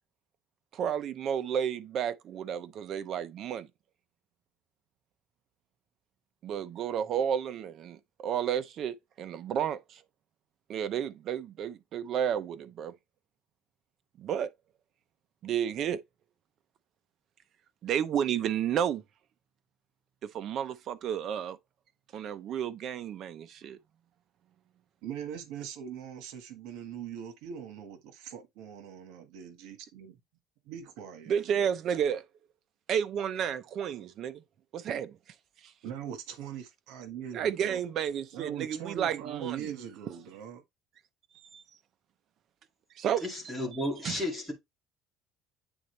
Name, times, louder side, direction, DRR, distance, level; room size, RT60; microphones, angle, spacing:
voice 1, 0.7-3.7 6.4-10.0 10.7-12.9 14.2-14.5 15.4-16.0 17.8-19.0 20.2-21.6 22.1-23.8 31.3-32.2 32.9-34.4 34.7-35.2 37.3-39.7 41.5-41.6 43.0-43.2 44.0-44.2, right 9 dB, 45° right, 0.7 m, -31 dB
voice 2, 25.0-30.1 30.7-31.7 35.8-37.8 38.3-40.6, right 9 dB, 80° right, 1.5 m, -41 dB
voice 3, 43.2-44.5, left 1 dB, 5° right, 2.2 m, -33 dB
9.0 x 3.9 x 3.3 m
cardioid pair, 160°, 0 cm